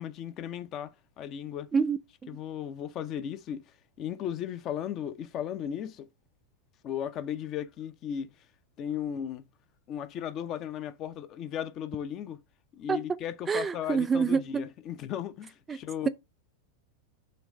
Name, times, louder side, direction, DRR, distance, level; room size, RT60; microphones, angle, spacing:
voice 1, 0.0-1.7 2.3-3.7 4.0-6.0 6.8-8.3 8.8-9.4 9.9-12.4 12.7-16.1, left 9 dB, 35° left, 0.7 m, -36 dB
voice 2, 1.7-2.3 12.9-13.0 13.5-14.7 15.7-15.8, right 5 dB, 15° right, 0.3 m, -27 dB
6.8 x 3.2 x 5.2 m
figure-of-eight pair, 90°, 0 cm